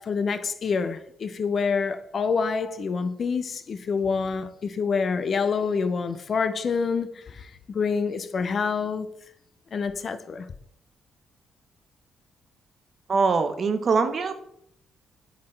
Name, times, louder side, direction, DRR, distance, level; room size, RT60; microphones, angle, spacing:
voice 1, 0.0-9.1 9.7-10.5, left 5 dB, 50° left, 0.5 m, -27 dB
voice 2, 13.1-14.3, right 4 dB, 45° right, 0.7 m, -23 dB
8.0 x 4.0 x 3.3 m
cardioid pair, 90°, 0 cm